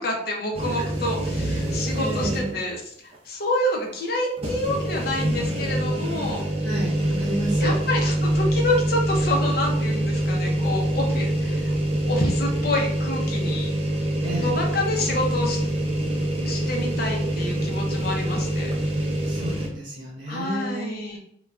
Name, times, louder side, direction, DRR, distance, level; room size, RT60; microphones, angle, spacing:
voice 1, 0.0-2.8 3.3-6.4 7.6-11.7 12.1-13.7 14.4-15.6 16.4-18.7 20.3-21.2, left 1 dB, 50° left, 0 dB, 0.6 m, -28 dB
sound 1, 0.5-2.7 3.1-3.2 4.4-19.7, right 1 dB, 30° right, 0.4 m, -25 dB
voice 2, 1.5-2.5 6.6-7.8 14.2-14.5 19.2-21.0, right 1 dB, 60° right, -5 dB, 0.8 m, -31 dB
3.2 x 2.2 x 2.4 m, 0.68 s
head